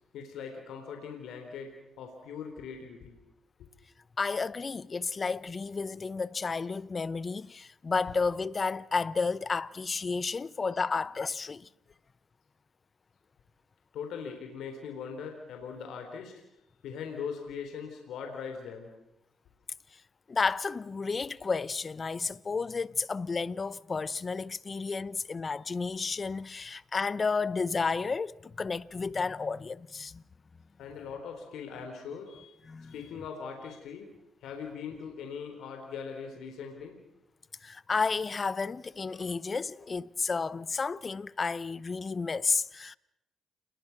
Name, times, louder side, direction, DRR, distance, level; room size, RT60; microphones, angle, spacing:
voice 1, 0.1-3.2 3.6-3.7 13.9-16.4 16.8-19.0 30.8-32.6 32.8-34.1 34.4-37.0, left 6 dB, 85° left, 3.9 m, -41 dB
voice 2, 4.2-11.7 19.9-20.0 20.3-30.2 32.7-32.9 37.6-43.0, left 4 dB, 35° left, 0.8 m, -32 dB
29.0 x 21.5 x 6.0 m
cardioid pair, 80°, 0 cm